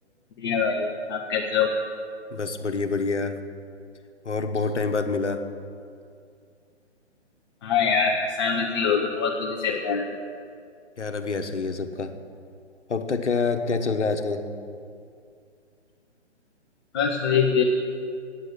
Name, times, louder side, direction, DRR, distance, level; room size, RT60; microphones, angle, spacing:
voice 1, 0.4-1.7 7.6-10.2 16.9-17.6, left 6 dB, 20° left, -2 dB, 0.7 m, -24 dB
voice 2, 2.3-3.4 4.2-5.4 11.0-12.1 12.9-14.5, left 4 dB, 75° left, 8 dB, 1.1 m, -26 dB
9.3 x 7.7 x 9.3 m, 2.4 s
figure-of-eight pair, 135°, 35 cm